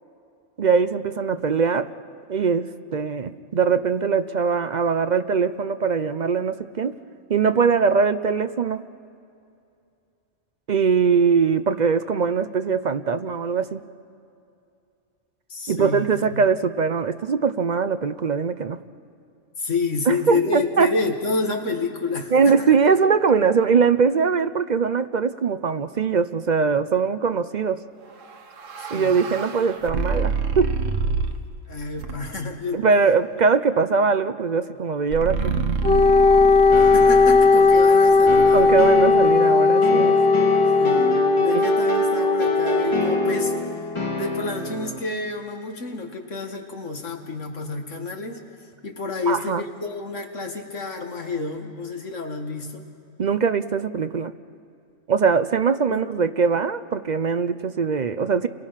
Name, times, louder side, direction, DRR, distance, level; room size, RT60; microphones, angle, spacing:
voice 1, 0.6-1.9 2.3-7.0 7.3-8.8 10.7-13.8 15.7-18.8 20.1-20.9 22.3-27.8 28.9-30.7 32.7-35.6 38.5-40.2 41.5-41.6 49.3-49.6 53.2-54.3 55.1-58.5, right 5 dB, 50° right, 11 dB, 0.6 m, -21 dB
voice 2, 15.5-16.5 19.6-22.7 28.8-29.2 31.7-32.8 36.8-38.9 40.8-43.5 44.2-48.4 48.8-52.8 55.9-56.0, left 4 dB, 70° left, 3 dB, 2.2 m, -29 dB
sound 1, 28.2-31.5 32.0-32.5 35.1-39.2, right 4 dB, 80° right, 1.5 m, -28 dB
Wind instrument woodwind instrument, 35.8-43.6, left 4 dB, 55° left, 1.2 m, -17 dB
sound 2, 36.7-45.0, left 2 dB, 25° left, 1.8 m, -28 dB
30.0 x 22.5 x 5.8 m, 2.6 s
omnidirectional pair, 1.3 m